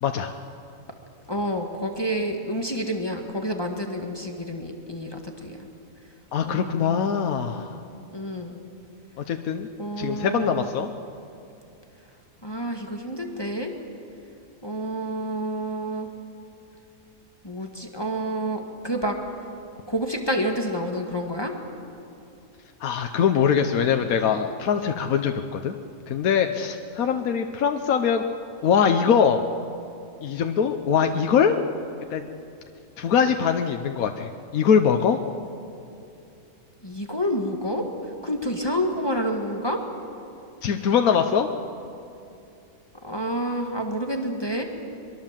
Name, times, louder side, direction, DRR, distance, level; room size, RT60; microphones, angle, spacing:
voice 1, 0.0-0.3 6.3-7.8 9.3-9.7 10.0-10.9 22.8-25.8 26.1-28.2 28.6-29.4 30.2-31.6 32.1-32.2 33.0-35.2 40.6-41.5, left 7 dB, 80° left, 6 dB, 1.3 m, -22 dB
voice 2, 1.3-5.6 6.4-7.4 8.1-8.5 9.8-10.7 12.4-13.7 14.6-16.1 17.4-19.2 19.9-21.5 36.8-37.9 38.2-39.8 43.0-44.6, equal, 20° left, 2 dB, 1.7 m, -29 dB
22.5 x 22.5 x 7.4 m, 2.7 s
omnidirectional pair, 1.5 m